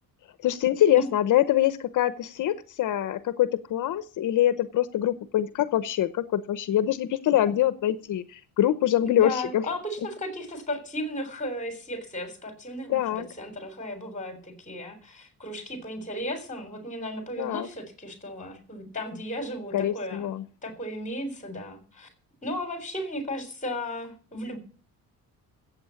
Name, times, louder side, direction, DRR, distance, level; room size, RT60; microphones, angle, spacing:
voice 1, 0.4-9.6 12.9-13.3 17.4-17.7 19.7-20.4, left 12 dB, 60° left, 14 dB, 0.9 m, -24 dB
voice 2, 9.0-20.3 20.6-22.1 22.4-24.6, left 1 dB, 20° left, 7 dB, 3.7 m, -35 dB
14.5 x 8.3 x 7.1 m, 0.41 s
cardioid pair, 145°, 36 cm